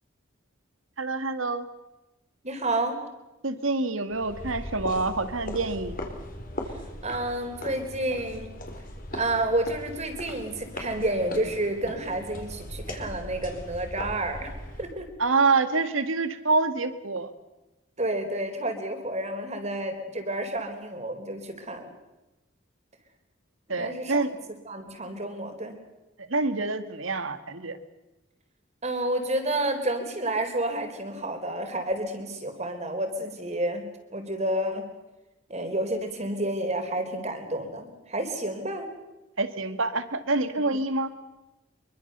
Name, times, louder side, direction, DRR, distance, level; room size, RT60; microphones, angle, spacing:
voice 1, 1.0-1.7 3.4-6.0 15.2-17.3 23.7-24.3 26.3-27.8 39.4-41.1, right 3 dB, 85° right, 10 dB, 2.1 m, -26 dB
voice 2, 2.4-3.0 7.0-8.5 9.1-15.1 18.0-21.9 23.7-24.2 24.7-25.8 28.8-34.8 35.5-38.9, right 1 dB, 35° right, 6 dB, 4.1 m, -30 dB
sound 1, 4.1-15.0, left 1 dB, 45° left, 4.3 m, -39 dB
25.5 x 23.5 x 6.9 m, 1.0 s
head